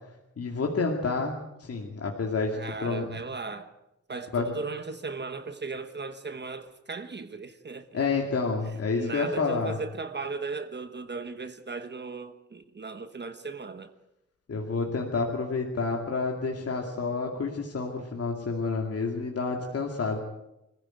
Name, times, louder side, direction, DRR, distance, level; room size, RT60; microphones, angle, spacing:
voice 1, 0.4-1.3 1.6-2.6 2.8-3.1 4.3-4.5 7.9-9.8 14.5-20.2, left 4 dB, 55° left, 2.5 m, -29 dB
voice 2, 2.5-3.7 4.1-8.1 8.9-13.9, right 4 dB, 35° right, 1.2 m, -37 dB
26.0 x 15.5 x 9.2 m
wide cardioid pair, 180°, 30 cm